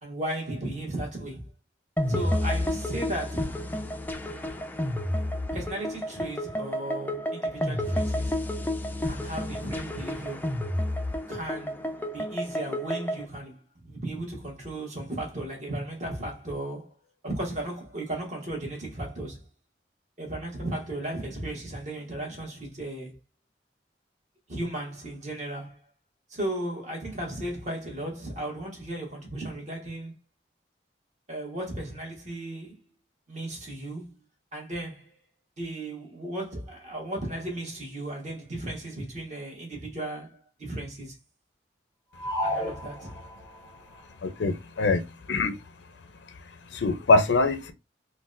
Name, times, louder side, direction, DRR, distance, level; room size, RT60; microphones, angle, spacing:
voice 1, 0.0-1.5 2.1-3.6 5.5-8.4 9.1-10.5 11.3-11.9 12.1-16.9 17.2-19.4 20.2-23.2 24.5-25.8 26.3-30.1 31.3-32.9 33.3-34.1 34.5-35.1 35.6-41.1 42.4-43.1, right 1 dB, 40° right, 1.3 m, -35 dB
sound 1, 2.0-13.3, left 1 dB, 10° left, 0.3 m, -30 dB
sound 2, 42.2-43.7, equal, 10° right, 1.2 m, -32 dB
voice 2, 44.2-45.0 45.3-45.6 46.7-47.7, left 3 dB, 90° left, 0.5 m, -23 dB
3.9 x 2.2 x 2.5 m
head